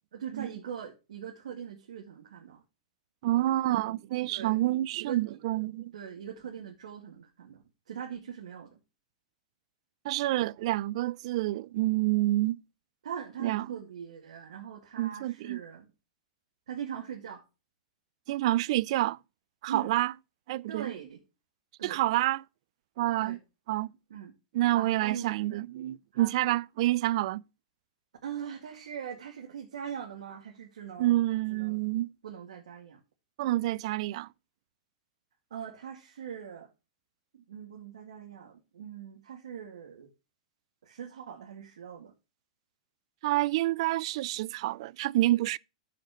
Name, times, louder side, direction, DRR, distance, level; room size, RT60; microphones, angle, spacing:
voice 1, 0.1-2.6 3.7-3.8 4.3-4.6 5.0-5.4 5.9-8.8 13.0-15.9 16.7-17.4 19.7-19.9 20.7-21.2 21.8-22.0 23.2-23.4 24.1-24.3 24.7-25.3 26.1-26.3 28.2-31.2 31.5-31.9 32.2-33.0 35.5-36.7 37.3-40.1 40.8-42.1, right 8 dB, 80° right, 2.0 m, -41 dB
voice 2, 3.2-5.9 10.0-12.6 13.4-13.7 15.0-15.6 18.3-19.2 19.6-20.1 20.5-20.9 21.8-22.4 23.0-23.4 23.7-23.9 24.5-27.4 31.0-32.1 33.4-34.3 43.2-45.6, right 16 dB, 60° right, 0.4 m, -28 dB
13.0 x 5.8 x 3.0 m
hypercardioid pair, 125°, 4 cm